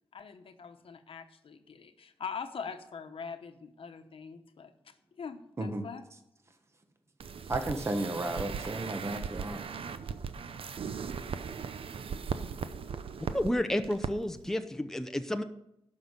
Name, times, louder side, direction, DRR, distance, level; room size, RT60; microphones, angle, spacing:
voice 1, 0.1-6.0, left 6 dB, 65° left, 8 dB, 1.0 m, -43 dB
sound 1, 7.2-13.5 13.8-14.1 14.4-14.5, right 6 dB, 70° right, 0.7 m, -38 dB
voice 2, 7.5-9.6, right 2 dB, 25° right, 6 dB, 1.2 m, -33 dB
voice 3, 13.3-15.4, left 1 dB, 5° left, 7 dB, 0.7 m, -31 dB
12.0 x 5.7 x 8.1 m, 0.80 s
wide cardioid pair, 120°, 10 cm